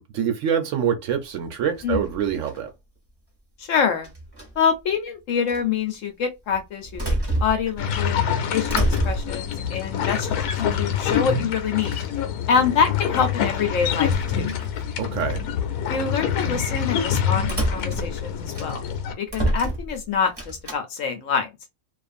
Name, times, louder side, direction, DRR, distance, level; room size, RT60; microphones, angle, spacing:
voice 1, 0.0-2.7 15.0-15.4, right 8 dB, 65° right, 0.8 m, -25 dB
sound 1, 1.7-2.7 4.0-4.7 5.5-5.6 6.5-8.0 8.3-9.5 10.1-10.9 11.5-11.6 11.8-12.2 13.8-15.3 15.9-16.1 17.4-19.0 19.3-20.8, right 1 dB, 20° right, 0.8 m, -29 dB
voice 2, 3.6-4.1 4.6-8.2 8.5-10.5 10.8-12.0 12.5-14.5 15.9-18.8 19.2-21.5, left 6 dB, 65° left, 0.9 m, -25 dB
sound 2, 7.8-19.1, left 8 dB, 85° left, 1.1 m, -26 dB
2.5 x 2.4 x 2.4 m
omnidirectional pair, 1.6 m